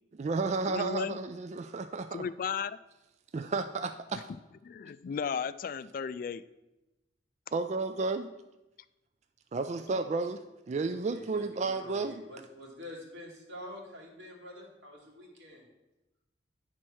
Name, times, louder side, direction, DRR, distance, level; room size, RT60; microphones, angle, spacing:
voice 1, 0.1-2.3 3.3-4.3 7.5-8.3 9.5-12.1, right 3 dB, 40° right, 8 dB, 0.3 m, -32 dB
voice 2, 0.7-1.2 2.1-2.8 4.6-6.4, left 6 dB, 50° left, 15 dB, 0.3 m, -35 dB
voice 3, 10.9-15.6, left 1 dB, 90° right, -1 dB, 2.3 m, -47 dB
9.8 x 4.4 x 6.2 m, 0.99 s
head